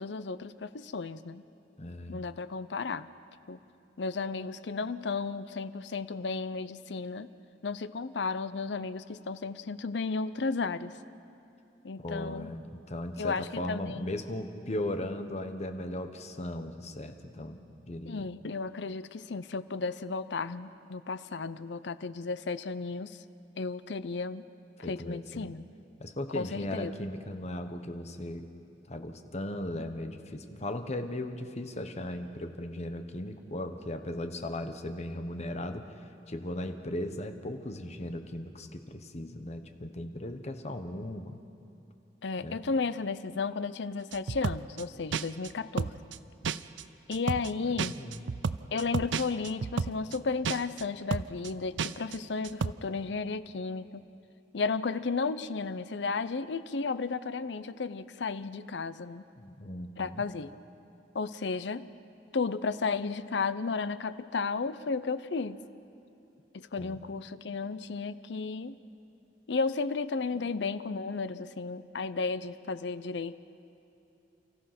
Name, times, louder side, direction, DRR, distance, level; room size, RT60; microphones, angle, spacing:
voice 1, 0.0-1.4 2.1-3.1 3.5-3.6 4.0-7.3 7.6-11.0 11.8-12.5 13.2-14.0 18.1-23.2 23.6-24.5 24.9-25.7 26.3-26.9 42.2-46.0 47.1-48.0 48.7-54.0 54.5-59.2 60.0-60.5 61.1-61.9 62.3-65.6 66.5-68.8 69.5-73.4, left 4 dB, 70° left, 14 dB, 0.6 m, -33 dB
voice 2, 1.8-2.2 12.0-17.6 17.9-18.2 24.8-25.5 26.0-28.5 28.9-41.4 42.4-42.6 47.6-48.2 59.4-60.2 66.8-67.0, left 1 dB, 40° left, 7 dB, 1.2 m, -37 dB
sound 1, 44.1-44.8 45.1-45.5 45.8-46.2 46.4-46.8 47.1-47.5 47.8-50.2 50.4-50.8 51.1-51.5 51.8-52.2 52.4-52.7, right 5 dB, 80° right, 0.5 m, -32 dB
29.5 x 14.5 x 6.0 m, 2.8 s
head